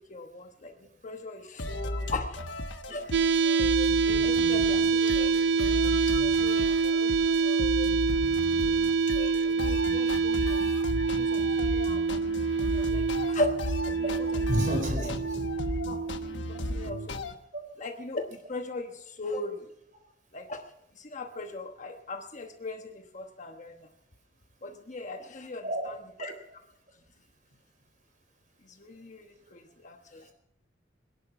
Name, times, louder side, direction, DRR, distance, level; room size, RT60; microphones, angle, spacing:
voice 1, 0.1-0.7 1.0-2.4 2.9-3.0 4.1-7.1 7.6-7.7 9.4-10.6 11.2-12.3 12.9-13.5 13.8-14.5 15.0-15.1 15.9-16.0 16.5-17.3 17.8-19.6 20.3-20.6 21.0-23.8 24.6-26.3 28.8-30.2, left 2 dB, 40° left, 4 dB, 1.1 m, -38 dB
sound 1, 1.6-17.3, left 1 dB, 85° left, 1.2 m, -35 dB
sound 2, 3.1-17.1, right 5 dB, 75° right, 0.6 m, -26 dB
voice 2, 14.5-15.7 24.7-24.8 25.6-25.9, equal, 45° right, 5 dB, 4.4 m, -31 dB
22.5 x 11.0 x 5.8 m, 0.77 s
head